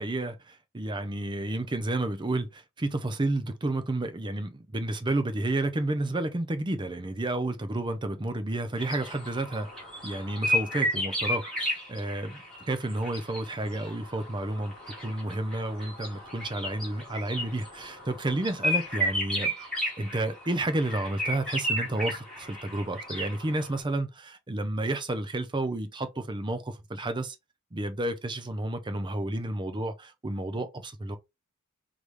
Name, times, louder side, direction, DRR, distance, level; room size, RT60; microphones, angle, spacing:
voice 1, 0.0-9.7 10.0-14.7 15.0-27.4 27.7-31.2, right 2 dB, 20° right, 0.5 m, -31 dB
sound 1, 8.8-23.8, equal, 5° left, 1.9 m, -33 dB
3.9 x 3.2 x 3.3 m
head